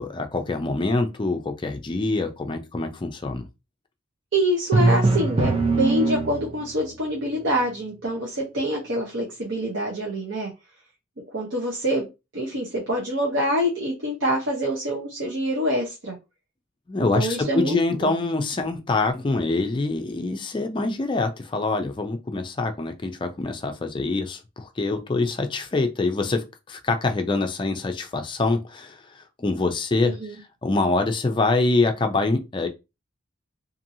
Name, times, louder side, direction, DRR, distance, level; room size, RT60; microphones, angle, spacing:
voice 1, 0.0-3.5 16.9-32.7, left 3 dB, 25° left, 0.4 m, -25 dB
voice 2, 4.3-10.5 11.3-12.0 12.3-16.1 17.1-18.1 20.8-20.9 30.0-30.4, equal, 70° right, 0.9 m, -26 dB
Drum, 4.7-6.7, right 3 dB, 30° right, 0.5 m, -21 dB
2.8 x 2.6 x 2.6 m
head